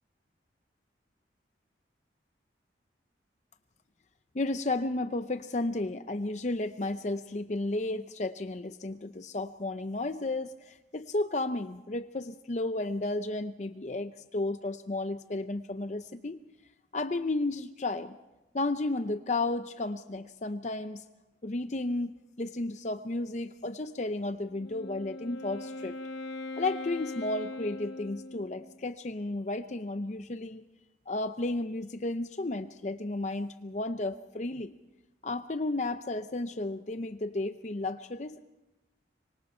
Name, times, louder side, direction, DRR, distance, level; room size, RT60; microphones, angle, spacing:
voice 1, 4.3-16.4 16.9-18.2 18.5-21.0 21.4-26.0 26.6-30.6 31.1-34.8 35.2-38.5, left 2 dB, 40° left, 10 dB, 0.6 m, -33 dB
Wind instrument woodwind instrument, 24.4-28.8, left 3 dB, 85° left, 1.3 m, -41 dB
25.5 x 23.5 x 4.4 m, 1.0 s
head